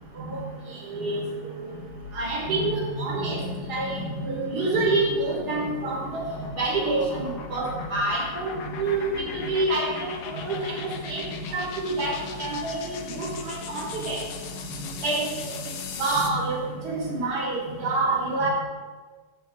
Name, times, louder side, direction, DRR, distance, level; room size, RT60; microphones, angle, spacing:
voice 1, 0.9-1.3 2.1-3.4 3.7-6.3 6.6-9.1 9.3-14.2 14.7-15.6 16.0-16.6 16.8-18.5, right 2 dB, 85° right, -3 dB, 2.5 m, -27 dB
sound 1, 1.7-16.4, left 4 dB, 90° left, 1.4 m, -38 dB
10.5 x 7.0 x 4.1 m, 1.4 s
omnidirectional pair, 1.7 m